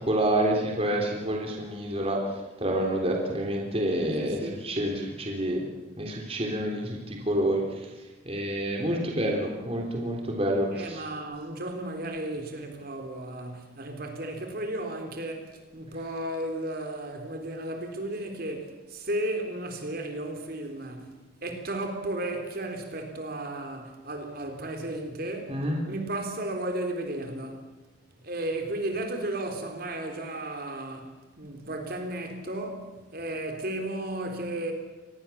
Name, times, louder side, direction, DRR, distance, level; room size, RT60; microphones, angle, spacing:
voice 1, 0.1-2.2 2.6-4.4 4.6-5.6 6.0-7.6 8.3-11.0 25.5-25.8, right 1 dB, 30° right, 3.4 m, -28 dB
voice 2, 4.2-4.6 10.7-21.1 21.4-27.7 28.1-34.7, right 1 dB, 50° right, 3.8 m, -34 dB
26.0 x 20.0 x 7.2 m
head